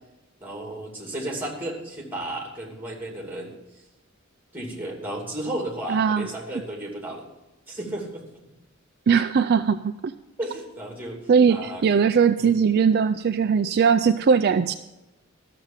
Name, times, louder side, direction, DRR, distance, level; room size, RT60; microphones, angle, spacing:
voice 1, 0.4-3.5 4.5-7.3 7.7-8.4 10.4-11.2 11.5-11.8 12.4-12.6, right 1 dB, 10° right, 0 dB, 2.7 m, -33 dB
voice 2, 5.9-6.3 9.1-10.1 11.3-14.7, right 6 dB, 50° right, 9 dB, 0.4 m, -20 dB
13.0 x 6.7 x 7.4 m, 0.99 s
head